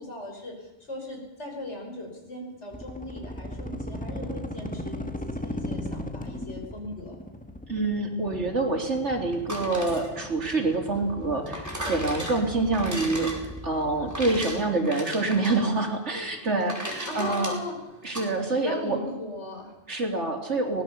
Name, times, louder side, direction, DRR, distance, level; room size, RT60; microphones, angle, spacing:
voice 1, 0.0-7.2 17.1-17.8 18.6-19.7, left 2 dB, 70° left, 2 dB, 6.0 m, -38 dB
sound 1, 2.7-14.5, equal, 5° left, 1.4 m, -38 dB
voice 2, 7.7-17.6 18.0-19.0 19.9-20.8, right 3 dB, 75° right, 2 dB, 3.8 m, -26 dB
sound 2, 9.3-18.3, equal, 15° right, 5.1 m, -38 dB
23.5 x 18.5 x 7.0 m, 1.0 s
omnidirectional pair, 1.2 m